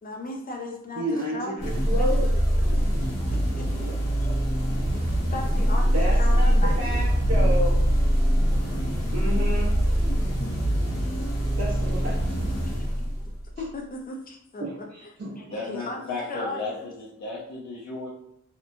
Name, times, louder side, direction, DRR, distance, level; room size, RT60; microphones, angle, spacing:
voice 1, 0.0-2.1 2.5-2.9 3.3-3.7 4.2-4.4 5.0-7.1 12.6-12.9 13.6-15.1 15.4-16.8, left 2 dB, 30° left, 1 dB, 0.5 m, -37 dB
voice 2, 1.0-2.3 3.8-3.9 5.9-7.8 9.1-9.7 11.6-12.2 14.6-15.4, right 1 dB, 60° right, -6 dB, 0.7 m, -31 dB
sound 1, 1.6-13.5, equal, 60° left, 1.0 m, -23 dB
voice 3, 15.5-18.1, left 3 dB, 80° left, -6 dB, 0.7 m, -34 dB
2.9 x 2.2 x 2.5 m, 0.74 s
wide cardioid pair, 70°, 29 cm